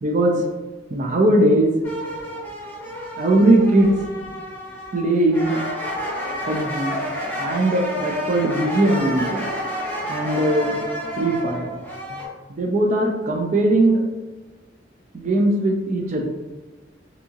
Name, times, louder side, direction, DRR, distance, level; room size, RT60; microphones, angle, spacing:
voice 1, 0.0-0.4 0.9-1.7 3.2-4.3 4.9-5.6 6.5-7.0 7.4-9.4 10.1-10.8 11.2-11.8 12.1-12.2 12.5-14.1 15.1-16.3, right 1 dB, 40° right, 1 dB, 0.4 m, -19 dB
sound 1, 1.8-5.0 5.3-12.2, equal, 10° left, 1.0 m, -30 dB
3.5 x 2.7 x 2.8 m, 1.2 s
head